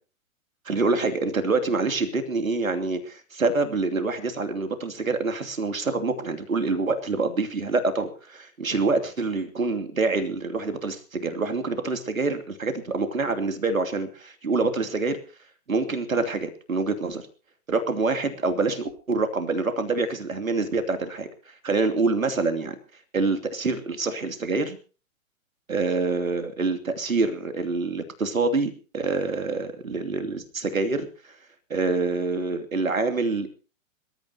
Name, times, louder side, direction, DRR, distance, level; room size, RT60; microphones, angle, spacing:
voice 1, 0.6-15.2 15.7-17.2 17.7-22.7 23.1-24.8 25.7-31.1 31.7-33.5, right 3 dB, 75° right, 8 dB, 2.9 m, -26 dB
26.0 x 13.5 x 2.9 m, 0.35 s
figure-of-eight pair, 110°, 41 cm